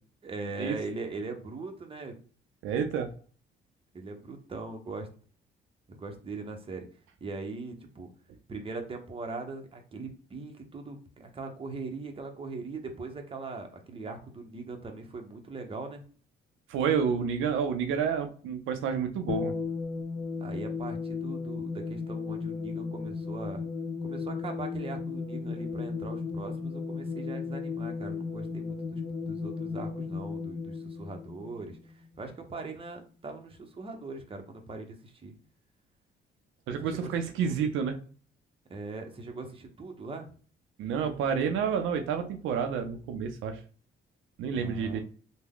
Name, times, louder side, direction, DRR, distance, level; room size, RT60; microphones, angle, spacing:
voice 1, 0.2-2.1 3.9-5.1 5.9-6.8 7.2-8.1 8.5-16.0 20.4-23.6 24.0-35.4 36.7-37.1 37.4-37.7 38.7-40.3 44.5-45.0, right 3 dB, 30° right, 4 dB, 0.7 m, -40 dB
voice 2, 2.6-3.1 16.7-19.5 36.7-38.0 40.8-43.6 44.4-45.0, right 7 dB, 85° right, 6 dB, 0.5 m, -29 dB
sound 1, 19.3-32.1, left 5 dB, 40° left, 0.8 m, -35 dB
3.4 x 2.1 x 3.5 m, 0.41 s
cardioid pair, 90°, 20 cm